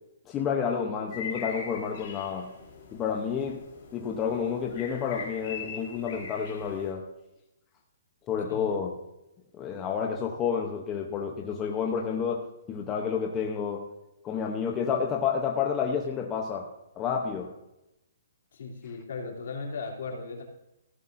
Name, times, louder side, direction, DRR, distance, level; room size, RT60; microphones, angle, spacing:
voice 1, 0.3-2.5 2.9-3.6 3.9-7.0 8.3-9.0 9.5-13.9 14.2-16.7 17.0-17.5, left 7 dB, 15° left, 1 dB, 0.8 m, -30 dB
sound 1, 1.1-6.9, left 6 dB, 35° left, 4.1 m, -42 dB
voice 2, 18.5-20.4, left 4 dB, 60° left, 1 dB, 2.9 m, -37 dB
15.0 x 11.5 x 2.6 m, 0.91 s
hypercardioid pair, 175°, 0 cm